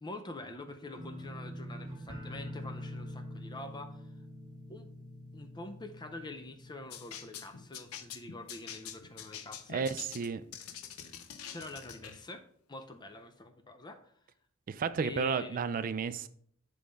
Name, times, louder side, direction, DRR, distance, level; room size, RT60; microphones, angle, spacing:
voice 1, 0.0-4.1 4.7-4.9 5.3-9.8 11.5-12.4 12.7-14.1 15.0-15.6, left 2 dB, 20° left, 0.5 m, -45 dB
sound 1, 0.9-7.8 8.1-8.7 9.0-9.1, equal, 20° right, 1.3 m, -45 dB
sound 2, 6.9-12.2, left 8 dB, 85° left, 0.6 m, -46 dB
voice 2, 9.7-10.4 14.7-16.3, right 5 dB, 40° right, 0.3 m, -32 dB
7.1 x 3.4 x 5.0 m
head